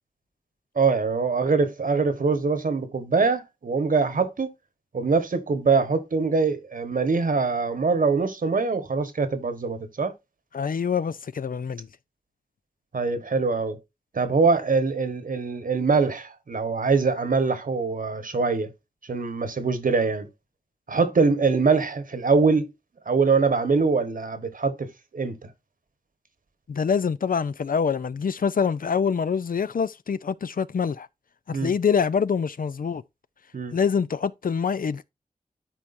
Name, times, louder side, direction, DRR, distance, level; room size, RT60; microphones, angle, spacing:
voice 1, 0.7-4.5 4.9-10.1 12.9-13.8 14.1-18.7 19.1-20.3 20.9-22.7 23.1-24.9 25.1-25.5 31.5-31.7 33.5-33.8, right 4 dB, 75° right, 1.3 m, -23 dB
voice 2, 10.5-11.9 26.7-31.1 31.5-33.0 33.7-35.1, left 6 dB, 80° left, 0.5 m, -25 dB
12.0 x 4.7 x 2.6 m
wide cardioid pair, 85°, 14 cm